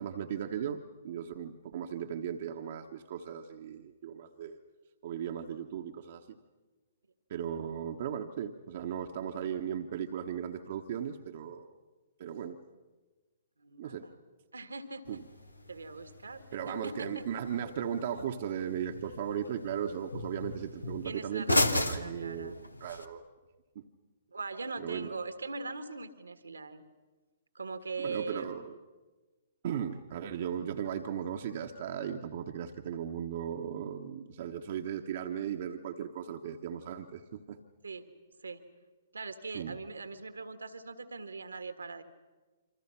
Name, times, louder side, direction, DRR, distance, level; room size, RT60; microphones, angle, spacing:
voice 1, 0.0-4.6 5.0-6.4 7.3-11.7 12.2-12.6 13.8-14.1 15.1-15.2 16.5-23.2 23.7-23.9 24.8-25.1 28.0-28.7 29.6-37.6 39.5-39.8, right 8 dB, 50° right, 4 dB, 1.2 m, -37 dB
voice 2, 13.6-14.1 14.5-15.2 15.7-17.3 21.0-22.6 24.3-26.8 27.5-28.6 37.8-38.1 38.4-38.6 39.1-42.0, right 4 dB, 80° right, 9 dB, 1.8 m, -41 dB
sound 1, 15.0-23.0, left 1 dB, 90° left, 1.3 m, -36 dB
27.5 x 25.0 x 5.9 m, 1.3 s
figure-of-eight pair, 120°, 0 cm